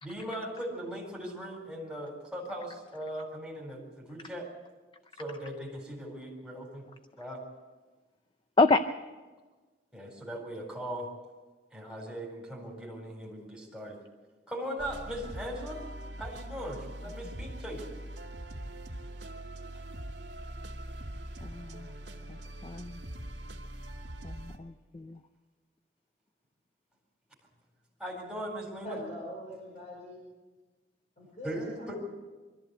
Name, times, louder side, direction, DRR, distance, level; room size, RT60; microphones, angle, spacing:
voice 1, 0.0-4.5 5.2-6.8 7.2-7.4 9.9-11.1 11.7-14.0 14.5-15.8 16.2-17.9 28.0-29.0 31.4-32.0, equal, ahead, -3 dB, 4.0 m, -39 dB
sound 1, 14.8-24.6, right 1 dB, 65° right, 2.3 m, -42 dB
voice 2, 21.4-21.9 22.3-22.4 22.6-23.0 24.2-25.2, left 3 dB, 25° left, 10 dB, 0.5 m, -28 dB
voice 3, 28.8-30.2 31.2-32.0, equal, 40° left, -3 dB, 5.4 m, -42 dB
24.0 x 14.0 x 8.1 m, 1.3 s
head